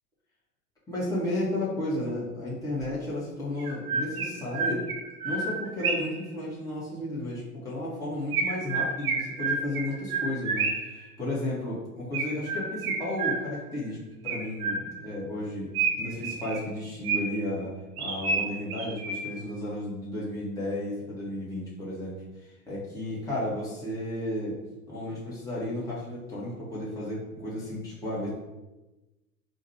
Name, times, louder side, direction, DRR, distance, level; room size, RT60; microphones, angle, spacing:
voice 1, 0.9-4.9 5.2-14.0 14.2-15.7 16.0-24.6 24.9-28.3, left 1 dB, 5° left, -9 dB, 1.5 m, -33 dB
Chirp tweet, 2.8-2.9 3.6-6.2 8.3-11.0 12.1-13.7 14.3-15.1 15.7-17.5 18.0-19.5, right 4 dB, 65° right, 1.1 m, -30 dB
3.8 x 2.5 x 4.2 m, 1.1 s
hypercardioid pair, 90°, 46 cm